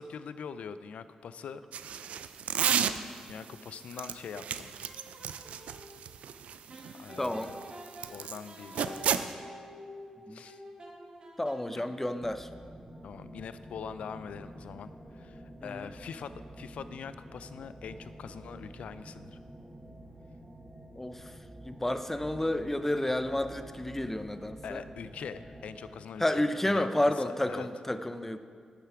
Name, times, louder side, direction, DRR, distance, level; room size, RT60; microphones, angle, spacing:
voice 1, 0.0-1.6 3.2-4.7 7.0-7.6 8.1-9.4 10.3-10.6 13.0-19.4 24.6-27.7, left 6 dB, 80° left, 13 dB, 0.3 m, -43 dB
sound 1, 1.7-3.3 3.9-8.4 8.7-9.3, right 8 dB, 85° right, 0.3 m, -31 dB
sound 2, 4.5-5.9 6.7-12.2, equal, 45° right, 1.6 m, -49 dB
voice 2, 7.2-7.5 10.3-10.4 11.4-12.5 15.6-15.9 21.0-21.2 21.6-24.8 26.2-28.4, left 1 dB, 15° left, 10 dB, 0.5 m, -30 dB
sound 3, 12.2-25.9, right 1 dB, 15° right, 1.0 m, -49 dB
10.5 x 6.7 x 4.9 m, 2.1 s
cardioid pair, 55°, 2 cm